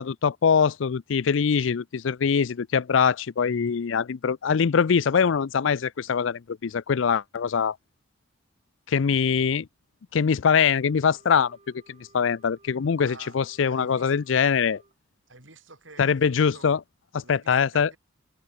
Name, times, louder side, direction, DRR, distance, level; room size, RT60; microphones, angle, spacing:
voice 1, 0.0-7.8 8.9-9.7 10.1-11.6 11.9-14.8 16.0-16.8 17.1-17.9, left 6 dB, 70° left, 0.5 m, -23 dB
Wind instrument woodwind instrument, 10.5-15.0, right 2 dB, 35° right, 5.3 m, -59 dB
voice 2, 13.0-13.4 13.6-14.2 15.3-16.7 17.2-18.0, right 3 dB, 75° right, 6.9 m, -49 dB
head